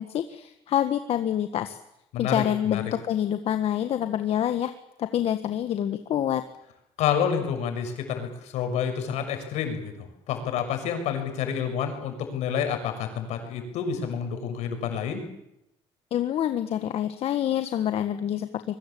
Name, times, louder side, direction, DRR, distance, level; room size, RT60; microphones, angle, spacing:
voice 1, 0.0-1.8 2.2-4.7 5.0-6.4 16.1-18.8, left 10 dB, 60° left, 9 dB, 1.5 m, -27 dB
voice 2, 2.1-2.9 7.0-15.2, left 7 dB, 75° left, 6 dB, 6.6 m, -29 dB
24.0 x 22.5 x 8.6 m, 0.83 s
cardioid pair, 95°, 12 cm